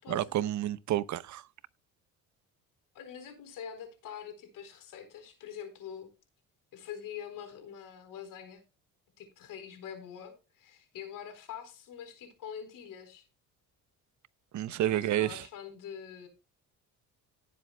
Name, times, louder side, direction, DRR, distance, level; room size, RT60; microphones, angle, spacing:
voice 1, 0.1-1.4 14.5-15.4, right 12 dB, 60° right, 0.8 m, -30 dB
voice 2, 2.9-6.1 6.7-8.6 9.2-13.3 14.8-16.3, left 8 dB, 75° left, 4.1 m, -44 dB
18.0 x 7.7 x 2.2 m
cardioid pair, 105°, 33 cm